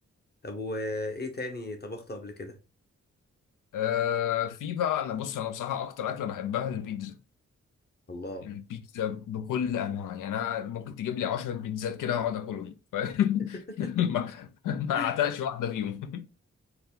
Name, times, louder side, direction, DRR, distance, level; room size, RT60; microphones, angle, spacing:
voice 1, 0.4-2.6 8.1-8.5 13.8-13.9 14.9-15.1, left 2 dB, 30° left, 1.0 m, -36 dB
voice 2, 3.7-7.2 8.4-16.3, left 9 dB, 85° left, 0.5 m, -30 dB
4.0 x 2.3 x 3.6 m
supercardioid pair, 45°, 31 cm